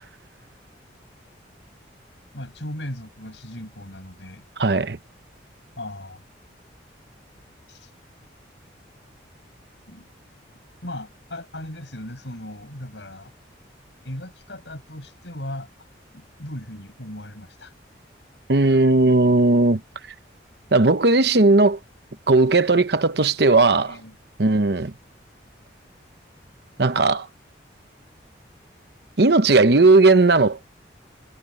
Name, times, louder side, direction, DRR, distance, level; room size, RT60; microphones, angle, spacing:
voice 1, 2.3-4.4 5.8-6.2 7.7-7.9 9.9-10.1 10.8-13.3 14.0-15.9 16.1-17.7 23.7-24.2, left 1 dB, 75° left, 7.2 m, -37 dB
voice 2, 4.6-5.0 18.5-19.8 20.7-21.8 22.3-23.9 24.4-24.9 26.8-27.3 29.2-30.7, right 3 dB, 60° right, 0.9 m, -17 dB
head